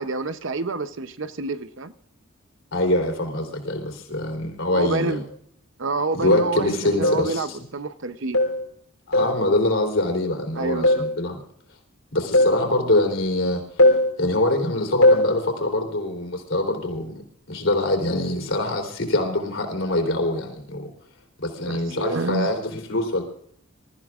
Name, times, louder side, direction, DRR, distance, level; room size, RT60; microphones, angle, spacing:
voice 1, 0.0-1.9 4.7-5.2 5.8-8.4 10.6-11.0 21.6-22.5, right 3 dB, 60° right, 0.7 m, -28 dB
voice 2, 2.7-5.2 6.1-7.6 9.1-11.4 12.1-13.6 14.2-17.2 17.5-20.9 21.4-23.2, left 1 dB, 60° left, 3.6 m, -24 dB
sound 1, 5.3-5.4 6.3-6.6 7.0-7.3 8.3-8.6 9.1-9.4 10.8-11.1 12.3-12.6 13.8-14.1 15.0-15.3, left 1 dB, 80° left, 3.5 m, -18 dB
27.5 x 14.0 x 2.4 m
head